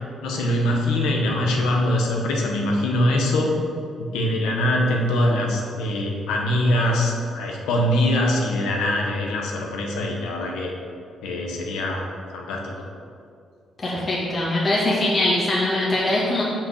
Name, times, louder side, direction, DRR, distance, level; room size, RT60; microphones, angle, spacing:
voice 1, 0.2-3.5 4.1-10.7 11.2-12.1 12.3-12.8, left 1 dB, 90° left, 0 dB, 1.2 m, -23 dB
voice 2, 13.8-16.4, left 1 dB, 35° left, -6 dB, 1.9 m, -22 dB
6.1 x 5.3 x 6.4 m, 2.3 s
cardioid pair, 90°, 0 cm